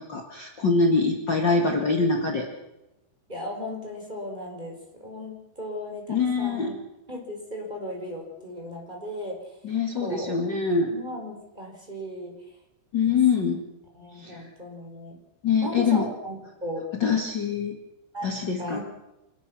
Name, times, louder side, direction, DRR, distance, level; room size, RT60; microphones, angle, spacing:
voice 1, 0.1-2.5 6.1-6.7 9.6-10.9 12.9-13.6 14.1-14.5 15.4-16.1 16.9-17.8 18.2-18.8, left 4 dB, 50° left, 1 dB, 1.4 m, -24 dB
voice 2, 3.3-6.7 7.1-9.4 9.9-10.3 10.9-12.3 13.0-13.6 13.9-15.2 15.6-16.4 16.6-17.1 18.1-18.3 18.6-18.8, left 1 dB, 10° right, 0 dB, 4.5 m, -36 dB
26.0 x 19.5 x 6.4 m, 0.93 s
omnidirectional pair, 5.5 m